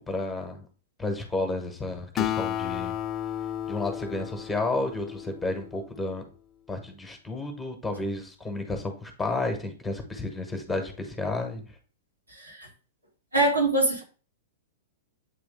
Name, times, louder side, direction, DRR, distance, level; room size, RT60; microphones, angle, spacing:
voice 1, 0.1-0.7 1.0-2.9 3.7-6.3 6.7-11.6, left 2 dB, 5° left, 1.2 m, -31 dB
Acoustic guitar, 2.2-5.9, left 11 dB, 25° left, 0.3 m, -33 dB
voice 2, 12.4-12.7 13.3-14.0, right 2 dB, 85° right, 2.3 m, -23 dB
8.2 x 3.5 x 3.5 m
figure-of-eight pair, 105°, 0 cm